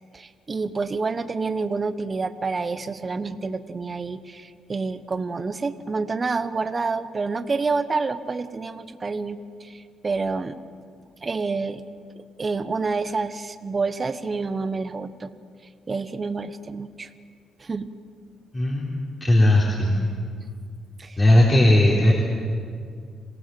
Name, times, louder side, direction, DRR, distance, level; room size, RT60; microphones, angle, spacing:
voice 1, 0.1-10.6 11.2-11.8 12.1-15.3 15.9-17.1 17.6-17.9 21.0-21.2, right 4 dB, 30° right, 11 dB, 1.2 m, -28 dB
voice 2, 18.5-20.1 21.2-22.1, left 1 dB, 25° left, -3 dB, 3.8 m, -18 dB
27.0 x 18.0 x 7.9 m, 2.1 s
cardioid pair, 90°, 0 cm